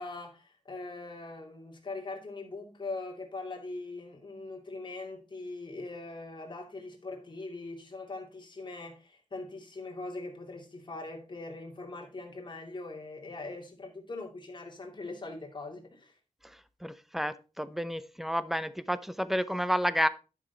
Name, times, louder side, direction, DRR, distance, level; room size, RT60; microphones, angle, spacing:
voice 1, 0.0-16.2, left 2 dB, 40° left, 2.6 m, -41 dB
voice 2, 16.4-20.1, equal, ahead, 0.7 m, -31 dB
11.0 x 6.3 x 4.0 m
wide cardioid pair, 100°, 12 cm